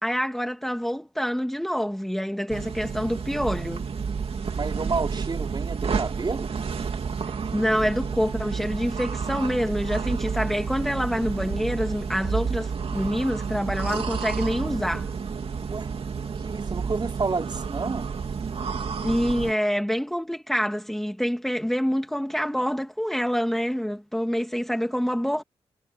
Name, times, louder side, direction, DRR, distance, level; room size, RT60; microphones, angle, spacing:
voice 1, 0.0-3.9 7.5-15.1 19.0-25.4, equal, 5° left, 2.1 m, -26 dB
sound 1, 2.5-19.5, right 5 dB, 60° right, 2.9 m, -30 dB
voice 2, 4.5-6.6 15.7-15.9 16.4-18.2, right 4 dB, 40° right, 5.3 m, -30 dB
wide cardioid pair, 95°, 11 cm